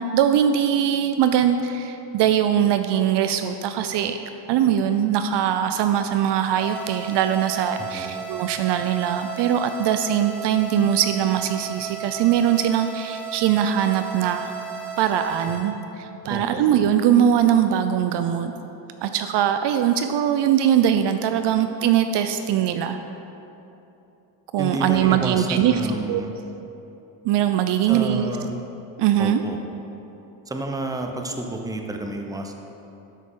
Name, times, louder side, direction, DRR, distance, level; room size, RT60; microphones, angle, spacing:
voice 1, 0.0-4.2 4.5-14.5 15.0-18.5 19.0-23.0 24.5-25.8 26.1-26.2 27.2-28.3 29.0-29.4, right 9 dB, 55° right, 8 dB, 0.6 m, -21 dB
sound 1, 6.6-15.6, right 7 dB, 80° right, 2.2 m, -35 dB
voice 2, 7.8-8.1 16.3-16.7 24.6-26.3 27.9-28.5 29.2-29.6 30.5-32.5, right 2 dB, 5° right, 3 dB, 0.8 m, -30 dB
12.5 x 6.0 x 3.8 m, 2.9 s
supercardioid pair, 90°, 50 cm